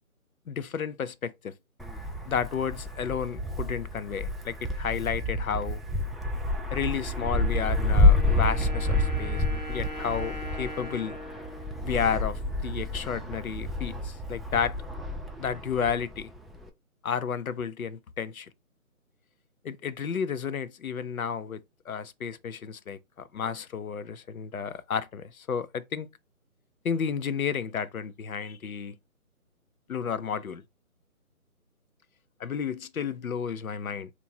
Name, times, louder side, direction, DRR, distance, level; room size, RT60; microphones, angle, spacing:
voice 1, 0.5-1.5 2.2-5.8 6.7-11.2 11.8-14.7 15.4-16.3 17.0-18.5 19.6-26.1 26.8-29.0 29.9-30.6 32.4-34.1, left 7 dB, 70° left, 0.6 m, -32 dB
Wind, 1.8-16.7, left 2 dB, ahead, 0.3 m, -29 dB
Wind instrument woodwind instrument, 7.2-12.9, equal, 30° left, 1.0 m, -41 dB
2.9 x 2.6 x 4.2 m
hypercardioid pair, 170°, 44 cm